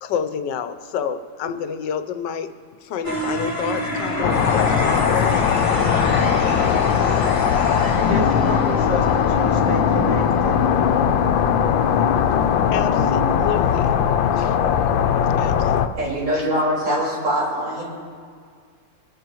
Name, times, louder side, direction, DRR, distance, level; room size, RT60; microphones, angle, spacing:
voice 1, 0.0-2.5 2.8-5.8 12.7-13.9 14.3-14.6 15.4-15.8, left 7 dB, 70° left, 9 dB, 1.4 m, -29 dB
sound 1, 3.0-10.0, left 1 dB, 10° left, 1.9 m, -28 dB
sound 2, 4.2-15.9, left 8 dB, 90° left, 1.4 m, -19 dB
voice 2, 8.1-10.7, equal, 70° right, -1 dB, 2.6 m, -29 dB
voice 3, 16.0-17.8, equal, 85° right, -6 dB, 5.3 m, -23 dB
23.5 x 12.0 x 3.1 m, 2.2 s
omnidirectional pair, 2.0 m